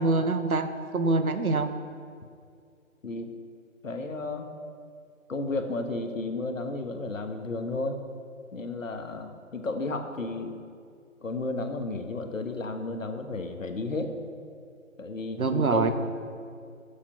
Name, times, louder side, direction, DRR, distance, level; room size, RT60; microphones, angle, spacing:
voice 1, 0.0-1.7 15.4-15.9, right 3 dB, 85° right, 8 dB, 1.1 m, -25 dB
voice 2, 3.8-4.5 5.3-8.0 8.5-10.6 11.2-14.2 15.0-15.9, left 2 dB, 65° left, 6 dB, 1.4 m, -33 dB
13.5 x 7.2 x 5.3 m, 2.2 s
figure-of-eight pair, 155°, 42 cm